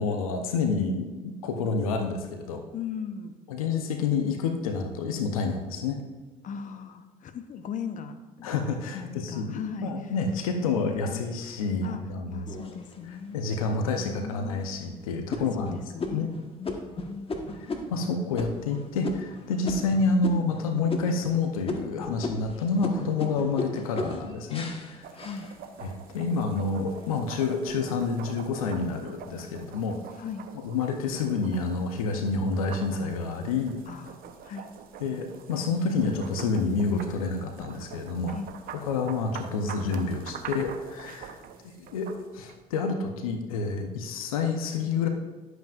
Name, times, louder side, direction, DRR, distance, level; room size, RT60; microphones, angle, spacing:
voice 1, 0.0-2.6 3.5-6.0 8.4-12.5 13.3-15.8 16.1-16.3 17.9-25.1 25.8-30.0 30.6-33.8 35.0-38.3 38.8-41.3 41.6-45.1, left 4 dB, 85° left, 5 dB, 0.7 m, -28 dB
voice 2, 2.7-3.3 6.4-8.6 8.9-10.1 10.6-11.4 11.8-12.0 12.3-13.6 14.0-14.8 15.4-16.3 16.6-17.5 25.1-25.5 30.2-30.5 33.9-34.7 38.3-38.6, left 6 dB, 50° left, 8 dB, 0.8 m, -38 dB
sound 1, 12.5-13.3 13.9-14.0 14.5-14.8 15.3-20.6 20.9-21.4 21.7-26.0 26.5-27.0, left 2 dB, 30° left, 1.3 m, -36 dB
sound 2, 25.0-42.6, right 7 dB, 60° right, 0.8 m, -45 dB
11.5 x 7.8 x 2.5 m, 1.3 s
hypercardioid pair, 60°, 18 cm